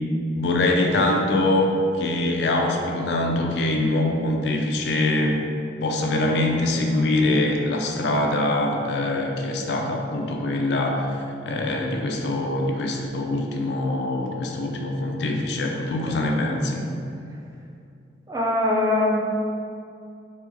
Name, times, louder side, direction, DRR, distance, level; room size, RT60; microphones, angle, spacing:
voice 1, 0.3-5.4 5.8-11.2 11.4-16.8, left 2 dB, 65° left, 1 dB, 0.4 m, -23 dB
voice 2, 16.1-16.5 18.3-19.2, left 2 dB, 20° right, -3 dB, 0.4 m, -23 dB
3.3 x 2.9 x 3.4 m, 2.5 s
head